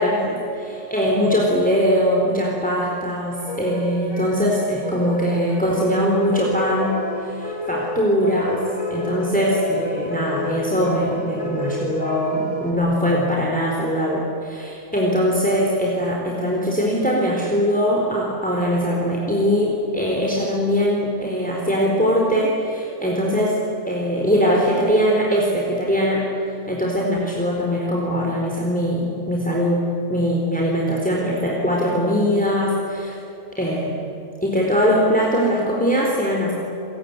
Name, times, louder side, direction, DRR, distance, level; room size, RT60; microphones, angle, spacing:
voice 1, 0.0-8.6 8.9-23.6 23.9-26.2 26.7-29.8 30.1-33.2 33.6-34.0 34.4-36.5, equal, 5° left, -3 dB, 4.0 m, -21 dB
sound 1, 3.3-12.7, left 1 dB, 85° left, 5.1 m, -30 dB
29.0 x 21.0 x 9.6 m, 2.8 s
omnidirectional pair, 1.3 m